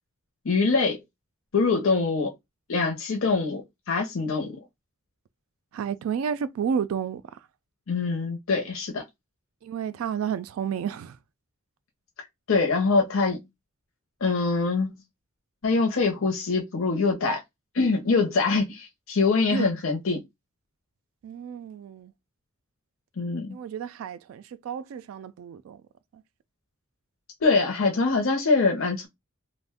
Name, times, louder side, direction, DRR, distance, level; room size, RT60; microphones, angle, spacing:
voice 1, 0.4-1.0 1.5-2.3 2.7-4.6 7.9-9.0 12.5-13.4 14.2-15.0 15.6-17.4 17.7-20.2 23.2-23.6 27.4-29.1, left 4 dB, 70° left, 0.7 m, -24 dB
voice 2, 5.7-7.2 9.6-11.2 19.5-19.7 21.2-22.1 23.5-25.8 26.1-26.2, right 7 dB, 75° right, 0.3 m, -31 dB
2.5 x 2.1 x 3.4 m
head